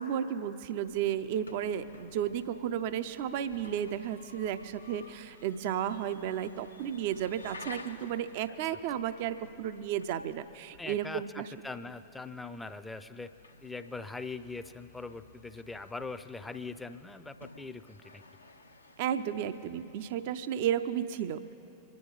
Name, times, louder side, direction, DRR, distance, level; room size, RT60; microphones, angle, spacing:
voice 1, 0.0-11.5 19.0-21.5, right 9 dB, 50° right, 11 dB, 0.5 m, -33 dB
sound 1, 0.8-20.2, left 3 dB, 80° left, 0.8 m, -54 dB
voice 2, 10.8-13.3 13.6-18.2, left 3 dB, 10° left, 11 dB, 0.6 m, -42 dB
25.5 x 10.5 x 3.9 m, 2.9 s
figure-of-eight pair, 90°, 0 cm